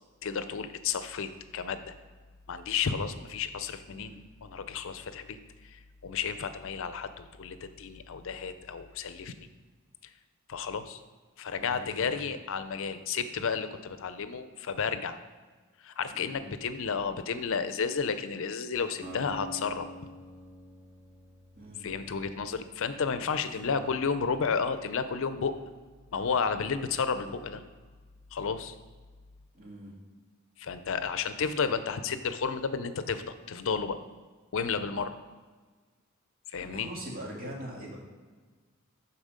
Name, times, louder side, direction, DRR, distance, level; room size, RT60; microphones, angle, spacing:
voice 1, 0.2-2.0 2.5-4.1 4.4-5.4 5.6-9.5 10.5-11.0 11.4-15.2 15.8-19.9 21.8-25.5 26.1-27.6 28.3-28.7 30.6-34.0 34.5-35.2 36.5-36.9, left 5 dB, 65° left, 11 dB, 0.5 m, -32 dB
voice 2, 3.9-4.2 11.6-12.2 16.1-16.4 21.5-21.9 23.6-23.8 29.5-29.9 36.6-38.0, right 1 dB, 45° right, -3 dB, 2.4 m, -42 dB
Acoustic guitar, 19.0-23.1, right 1 dB, 25° right, 2.2 m, -47 dB
11.5 x 4.2 x 5.1 m, 1.4 s
head